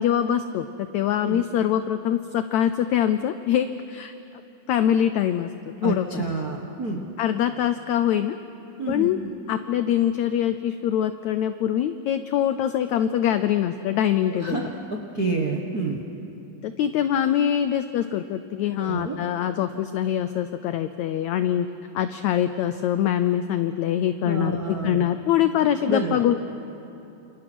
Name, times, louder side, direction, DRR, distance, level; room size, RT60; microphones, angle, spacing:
voice 1, 0.0-4.1 4.7-5.5 5.8-6.2 7.2-8.4 8.9-9.2 9.5-14.7 16.6-21.7 21.9-26.4, left 10 dB, 90° left, 10 dB, 1.6 m, -24 dB
voice 2, 5.8-7.0 8.8-9.1 14.3-16.0 18.8-19.2 24.2-25.0 25.9-26.4, right 3 dB, 60° right, 1 dB, 0.9 m, -28 dB
28.5 x 28.5 x 6.2 m, 2.9 s
omnidirectional pair, 4.1 m